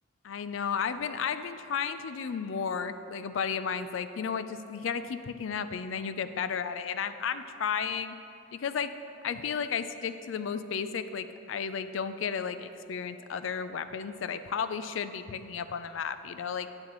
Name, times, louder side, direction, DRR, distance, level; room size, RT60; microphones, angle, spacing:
voice 1, 0.2-8.2 8.5-8.9 9.2-16.7, left 6 dB, 75° left, 11 dB, 0.4 m, -33 dB
11.0 x 8.8 x 3.0 m, 2.7 s
head